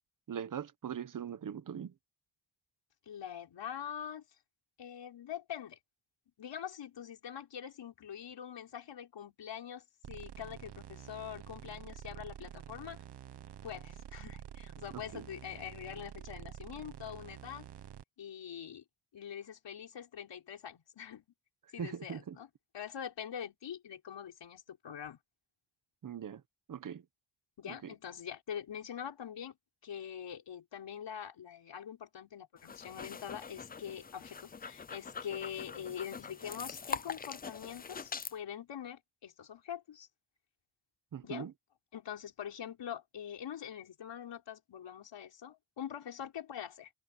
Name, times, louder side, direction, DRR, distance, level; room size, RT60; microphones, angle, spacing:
voice 1, 0.3-1.9 14.9-15.3 21.8-22.4 26.0-26.4 26.7-27.0 27.7-27.9 41.1-41.5, right 8 dB, 50° right, 1.0 m, -41 dB
voice 2, 3.1-4.2 4.8-5.8 6.4-13.0 13.6-17.7 18.2-18.8 19.1-21.3 21.7-22.5 22.7-25.2 27.6-29.6 29.8-40.1 41.2-41.5 41.9-46.9, left 9 dB, 85° left, 5.3 m, -44 dB
sound 1, 10.0-18.0, right 10 dB, 70° right, 1.2 m, -49 dB
sound 2, 32.6-38.3, left 5 dB, 25° left, 0.4 m, -43 dB
open air
wide cardioid pair, 155°, 42 cm